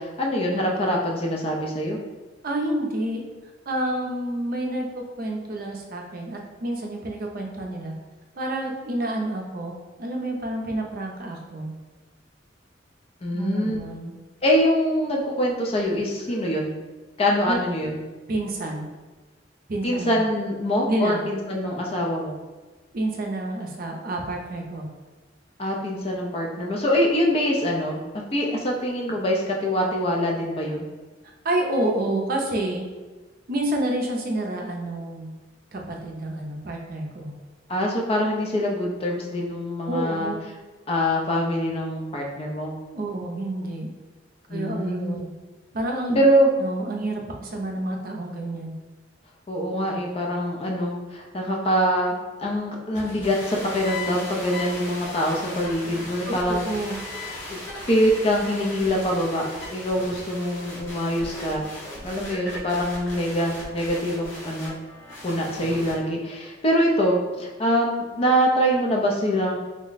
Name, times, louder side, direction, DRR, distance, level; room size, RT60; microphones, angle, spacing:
voice 1, 0.0-2.0 13.2-13.8 14.4-16.7 17.2-18.0 19.8-22.3 25.6-28.0 28.3-30.9 37.7-40.3 40.9-42.7 44.5-45.2 46.1-46.5 49.5-52.1 52.4-56.6 57.5-57.6 57.9-59.5 59.7-61.6 62.0-64.7 65.2-69.6, equal, 30° left, -1 dB, 0.5 m, -24 dB
voice 2, 2.4-3.2 3.7-7.9 8.4-9.7 10.0-11.7 13.3-14.1 17.5-17.6 18.3-18.9 19.7-20.2 20.9-21.2 22.9-24.9 31.4-32.8 33.5-35.3 35.7-37.3 39.9-40.4 42.9-43.9 44.5-45.3 45.7-46.2 46.6-48.7 56.3-57.0, right 1 dB, 50° right, 1 dB, 0.5 m, -29 dB
sound 1, 52.9-65.9, left 1 dB, 80° left, 0.9 m, -37 dB
3.3 x 2.1 x 3.9 m, 1.3 s
head